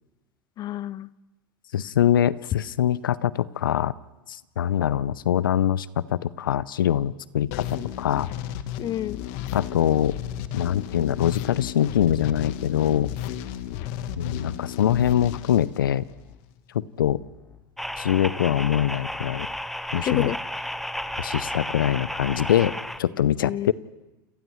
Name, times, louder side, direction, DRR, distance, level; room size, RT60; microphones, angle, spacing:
voice 1, 0.6-1.1 8.8-9.2 19.9-20.4 23.4-23.7, left 12 dB, 35° left, 21 dB, 0.6 m, -29 dB
voice 2, 1.7-3.9 4.3-8.3 9.5-10.2 10.5-13.1 14.2-16.0 16.7-17.2 18.0-19.5 19.9-20.3 21.2-22.7 23.0-23.7, left 10 dB, 80° left, 19 dB, 0.6 m, -23 dB
sound 1, 7.5-16.4, left 11 dB, 60° left, 1.2 m, -34 dB
sound 2, 9.0-12.5 13.0-16.5 17.0-20.5 21.0-23.0, left 5 dB, 20° left, 4.3 m, -52 dB
sound 3, 17.8-23.0, equal, ahead, 0.7 m, -33 dB
29.0 x 28.0 x 3.2 m, 1.1 s
hypercardioid pair, 85°, 11 cm